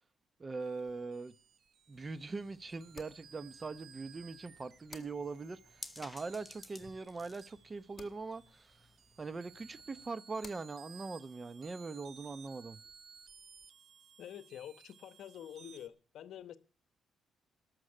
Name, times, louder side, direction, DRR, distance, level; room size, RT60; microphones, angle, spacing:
voice 1, 0.4-1.3 1.9-8.8 9.2-12.8, right 4 dB, 30° right, 0.7 m, -42 dB
sound 1, 0.6-15.9, right 6 dB, 60° right, 0.9 m, -59 dB
sound 2, 0.8-13.7, left 4 dB, 30° left, 1.8 m, -62 dB
sound 3, 1.9-10.1, left 1 dB, 10° left, 1.0 m, -57 dB
voice 2, 14.2-16.6, left 10 dB, 70° left, 0.9 m, -47 dB
13.0 x 6.4 x 8.7 m
cardioid pair, 90°, 0 cm